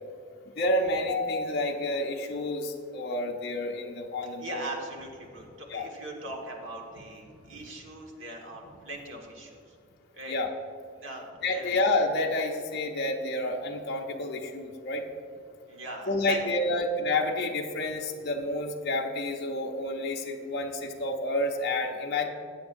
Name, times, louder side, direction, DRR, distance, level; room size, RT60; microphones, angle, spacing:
voice 1, 0.6-4.6 5.7-5.9 10.3-10.5 11.4-15.0 16.1-22.3, left 2 dB, 50° left, 0 dB, 0.7 m, -29 dB
voice 2, 4.2-9.7 10.1-10.4 11.0-11.8 15.7-16.4, right 2 dB, 60° right, 0 dB, 1.5 m, -40 dB
16.0 x 8.2 x 2.6 m, 2.4 s
head